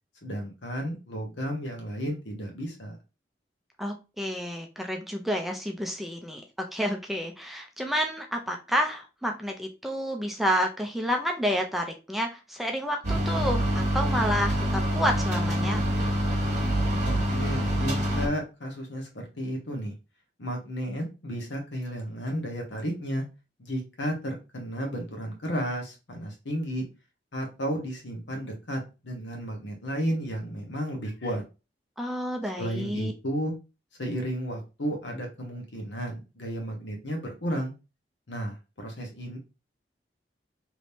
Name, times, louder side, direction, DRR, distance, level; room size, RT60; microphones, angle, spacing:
voice 1, 0.2-3.0 17.0-19.9 20.4-23.2 23.6-26.9 27.3-31.4 32.6-33.5 34.0-37.7 38.3-39.4, equal, 85° left, 2 dB, 1.1 m, -33 dB
voice 2, 3.8-15.8 32.0-33.1, equal, ahead, 2 dB, 0.4 m, -30 dB
sound 1, 13.0-18.3, equal, 40° right, 1.2 m, -26 dB
3.4 x 3.0 x 2.7 m, 0.29 s
head